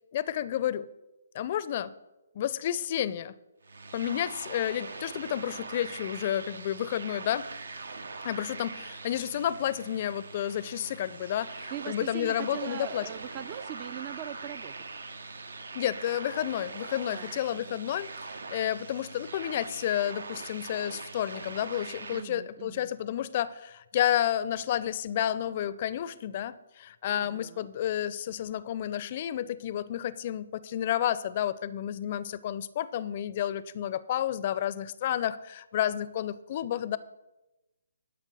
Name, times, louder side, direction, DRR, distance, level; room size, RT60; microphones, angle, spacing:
voice 1, 0.1-0.9 1.3-1.9 2.3-3.3 3.9-7.5 8.2-13.1 15.7-37.0, left 11 dB, 40° left, 18 dB, 0.5 m, -31 dB
sound 1, 3.6-22.2, right 3 dB, 75° right, 0.9 m, -42 dB
voice 2, 11.7-14.8 17.1-17.8 22.1-22.9 27.1-27.7, right 11 dB, 30° right, 17 dB, 0.4 m, -41 dB
12.0 x 5.6 x 6.7 m, 1.0 s
figure-of-eight pair, 140°, 0 cm